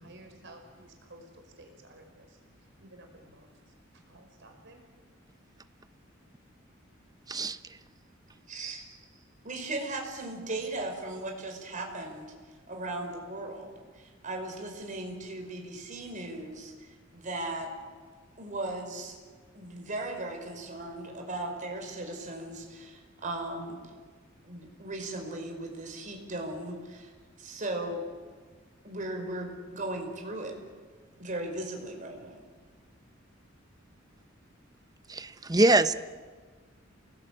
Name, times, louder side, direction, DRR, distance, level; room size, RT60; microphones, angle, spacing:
voice 1, 0.0-2.4 2.8-3.5 3.9-4.9, right 1 dB, 65° right, 4 dB, 5.5 m, -53 dB
voice 2, 7.3-7.6 35.1-35.9, right 2 dB, 20° right, 12 dB, 0.9 m, -23 dB
voice 3, 8.5-8.8 9.4-12.3 12.7-17.7 18.4-19.1 19.5-23.8 24.4-27.1 27.4-28.0 28.8-30.5 31.2-32.4, right 2 dB, 40° right, 3 dB, 5.2 m, -37 dB
28.5 x 19.5 x 9.0 m, 1.5 s
head